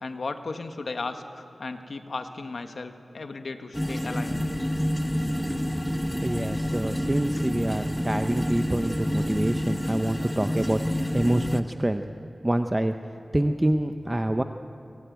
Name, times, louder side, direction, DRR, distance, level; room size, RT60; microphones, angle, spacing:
voice 1, 0.0-4.4, left 3 dB, 75° left, 7 dB, 1.5 m, -35 dB
sound 1, 3.7-11.6, equal, 5° left, 1.0 m, -28 dB
sound 2, 4.3-9.6, right 3 dB, 70° right, 1.7 m, -42 dB
voice 2, 5.9-10.8 11.1-12.0 12.4-12.9 13.3-14.4, right 1 dB, 20° right, 7 dB, 0.7 m, -26 dB
23.5 x 19.0 x 9.4 m, 2.7 s
wide cardioid pair, 90°, 0 cm